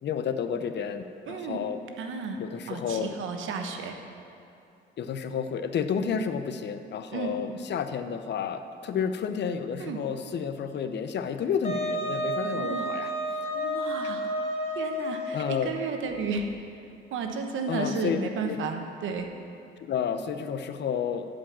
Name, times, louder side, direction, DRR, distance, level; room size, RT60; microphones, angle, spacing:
voice 1, 0.0-1.8 2.4-3.1 5.0-13.1 13.4-13.6 15.3-15.8 17.7-18.6 19.8-21.3, left 7 dB, 60° left, 9 dB, 0.7 m, -31 dB
voice 2, 1.3-1.6 2.0-2.4 2.7-3.9 6.0-6.1 7.1-7.6 9.8-10.0 12.5-12.8 13.5-14.4 14.7-16.5 17.1-19.3, right 4 dB, 80° right, 5 dB, 1.1 m, -33 dB
Wind instrument woodwind instrument, 11.6-16.0, equal, 30° left, 1.7 m, -31 dB
12.0 x 5.2 x 7.4 m, 2.7 s
cardioid pair, 90°, 20 cm